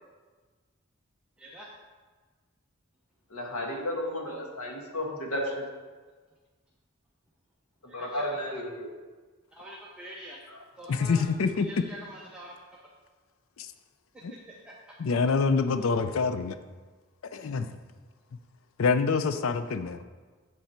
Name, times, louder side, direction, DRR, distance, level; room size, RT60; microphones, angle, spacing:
voice 1, 1.4-1.7 7.9-8.3 9.5-10.4 10.8-11.2 11.5-12.6 14.1-14.4 14.7-14.8, equal, 5° right, -5 dB, 0.7 m, -45 dB
voice 2, 3.3-5.6 7.9-8.9, left 1 dB, 90° left, 1 dB, 1.4 m, -33 dB
voice 3, 10.9-11.8 13.6-13.7 14.2-14.3 15.0-16.6 17.2-17.8 18.8-20.0, left 4 dB, 70° left, 11 dB, 0.4 m, -26 dB
7.9 x 5.8 x 4.3 m, 1.4 s
head